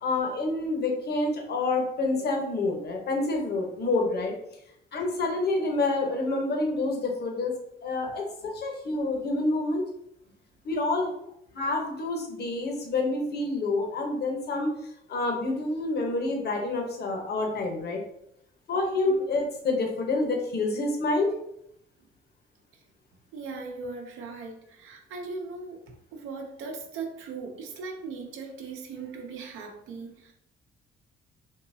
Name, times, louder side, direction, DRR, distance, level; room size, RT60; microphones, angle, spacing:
voice 1, 0.0-4.3 4.9-7.5 7.8-9.8 10.6-11.1 11.5-14.7 15.1-18.0 18.7-21.3, left 2 dB, 55° left, 1 dB, 0.9 m, -28 dB
voice 2, 23.3-25.8 26.1-30.3, right 4 dB, 90° right, 2 dB, 0.7 m, -39 dB
3.7 x 2.8 x 2.7 m, 0.75 s
cardioid pair, 90°, 20 cm